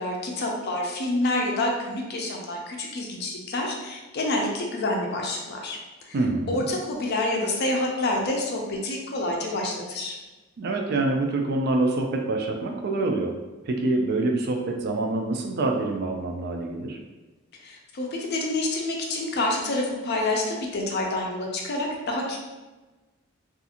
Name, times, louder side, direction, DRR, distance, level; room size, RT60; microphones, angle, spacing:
voice 1, 0.0-5.8 6.0-6.2 6.5-10.2 17.6-22.4, left 2 dB, 50° left, 0 dB, 0.4 m, -28 dB
voice 2, 6.1-6.6 10.6-13.3 13.6-17.0, right 2 dB, 45° right, 2 dB, 0.3 m, -26 dB
2.4 x 2.4 x 2.8 m, 1.2 s
head